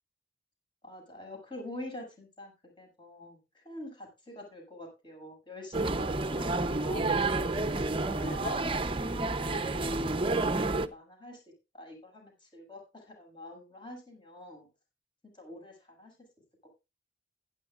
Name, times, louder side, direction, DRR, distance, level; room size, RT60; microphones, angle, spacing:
voice 1, 0.8-2.5 2.8-9.6 10.1-11.4 11.7-14.7 15.3-16.2 16.6-16.7, left 1 dB, 25° left, 1 dB, 7.0 m, -46 dB
sound 1, 5.7-10.9, right 2 dB, 30° right, 0.8 m, -30 dB
16.5 x 11.5 x 2.5 m, 0.27 s
head